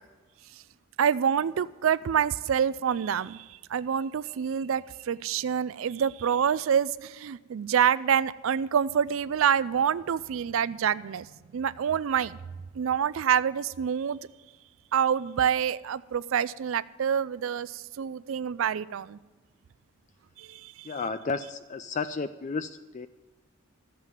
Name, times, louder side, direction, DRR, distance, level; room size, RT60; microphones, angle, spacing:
voice 1, 1.0-12.4 12.7-14.2 14.9-19.2 20.4-20.9, right 8 dB, 75° right, 17 dB, 0.4 m, -27 dB
voice 2, 20.8-23.1, left 4 dB, 35° left, 12 dB, 0.4 m, -32 dB
14.0 x 7.6 x 9.0 m, 1.2 s
head